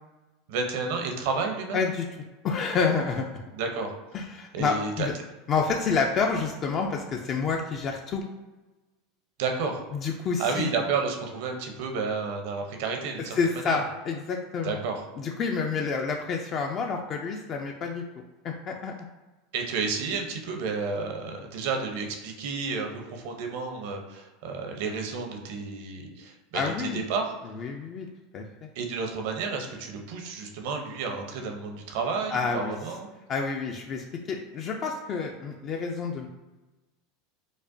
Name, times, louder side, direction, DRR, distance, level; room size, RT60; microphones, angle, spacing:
voice 1, 0.5-1.9 3.5-3.9 4.5-5.1 9.4-9.8 10.4-13.4 13.6-13.8 14.6-15.0 19.5-27.3 28.7-33.1, right 4 dB, 70° right, 3 dB, 0.7 m, -31 dB
voice 2, 1.7-2.1 2.4-3.3 4.1-5.1 5.5-8.2 9.9-10.7 13.3-14.8 15.2-18.0 18.4-18.9 26.5-27.0 27.5-28.1 28.3-28.4 32.3-32.8 33.3-36.3, left 5 dB, 40° left, 1 dB, 0.4 m, -28 dB
5.1 x 2.1 x 2.6 m, 1.1 s
supercardioid pair, 115°, 0 cm